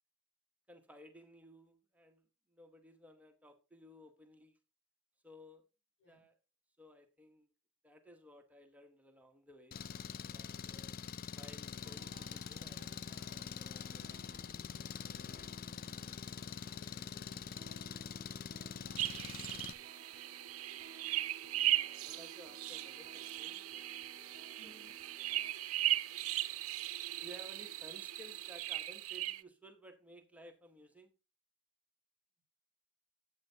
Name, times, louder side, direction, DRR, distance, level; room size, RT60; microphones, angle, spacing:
voice 1, 0.7-4.6 5.2-5.6 6.1-6.4 6.8-7.5 7.8-9.8 10.3-11.0 11.3-12.9 13.2-14.4 15.9-16.2 21.7-23.8 24.2-25.4 27.2-31.1, equal, 5° right, 1.0 m, -58 dB
Engine, 9.7-19.7, left 7 dB, 40° left, 0.4 m, -45 dB
sound 1, 11.8-25.5, right 3 dB, 40° right, 1.5 m, -60 dB
voice 2, 16.7-17.9 24.6-24.9, left 2 dB, 85° left, 3.4 m, -63 dB
sound 2, 19.0-29.4, right 14 dB, 70° right, 0.5 m, -38 dB
11.5 x 8.1 x 2.8 m
head